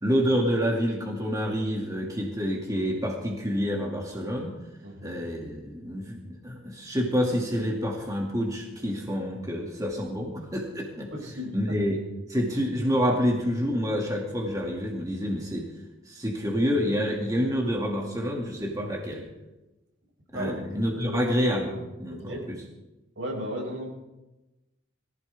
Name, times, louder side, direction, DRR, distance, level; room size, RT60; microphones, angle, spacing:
voice 1, 0.0-4.6 5.0-11.1 11.5-12.0 12.3-15.6 16.1-19.3 20.3-22.6, equal, 15° right, -1 dB, 2.3 m, -28 dB
voice 2, 4.8-5.2 11.1-11.8 20.3-20.6 20.9-21.2 22.1-22.5 23.2-23.9, equal, 80° right, -1 dB, 6.0 m, -35 dB
22.5 x 15.5 x 3.5 m, 1.0 s
head